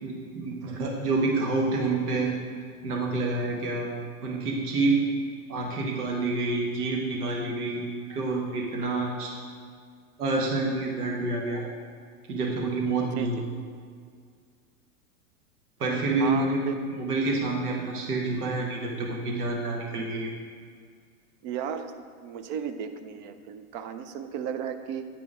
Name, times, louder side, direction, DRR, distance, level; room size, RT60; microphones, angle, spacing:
voice 1, 0.0-2.3 2.8-3.9 4.2-5.0 5.5-7.8 8.1-9.3 10.2-11.7 12.3-13.4 15.8-16.6 17.0-20.4, right 3 dB, 80° right, -1 dB, 1.6 m, -28 dB
voice 2, 16.2-16.8 21.4-21.9 22.2-25.1, right 8 dB, 30° right, 9 dB, 0.4 m, -34 dB
9.4 x 5.0 x 4.8 m, 2.1 s
hypercardioid pair, 125°, 46 cm